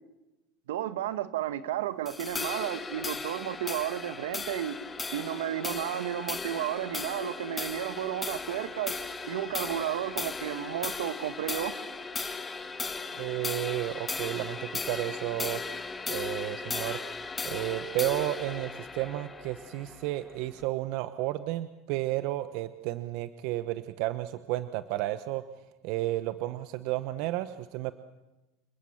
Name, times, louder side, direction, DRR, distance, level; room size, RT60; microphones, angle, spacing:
voice 1, 0.7-4.8 5.1-9.0 9.3-11.7, right 11 dB, 85° right, 12 dB, 1.5 m, -32 dB
sound 1, 2.1-20.7, left 4 dB, 20° left, 1.8 m, -37 dB
voice 2, 13.2-15.6 16.1-17.0 17.4-25.4 25.8-27.9, right 16 dB, 65° right, 12 dB, 1.0 m, -32 dB
29.0 x 20.0 x 7.3 m, 1.0 s
hypercardioid pair, 95°, 0 cm